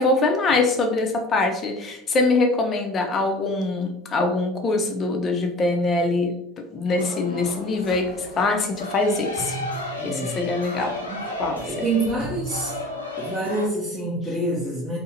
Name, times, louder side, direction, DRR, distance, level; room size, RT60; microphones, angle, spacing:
voice 1, 0.0-6.4 6.7-9.6 10.0-10.9 11.4-11.7, left 3 dB, 35° left, 4 dB, 0.5 m, -23 dB
sound 1, 6.9-13.7, left 2 dB, 90° left, 0.4 m, -34 dB
sound 2, 7.4-12.9, right 4 dB, 70° right, 0.9 m, -38 dB
voice 2, 10.0-10.4 11.1-11.2 11.6-12.7 13.2-15.0, right 2 dB, 15° right, -6 dB, 0.6 m, -27 dB
2.6 x 2.0 x 2.8 m, 0.80 s
figure-of-eight pair, 75°, 0 cm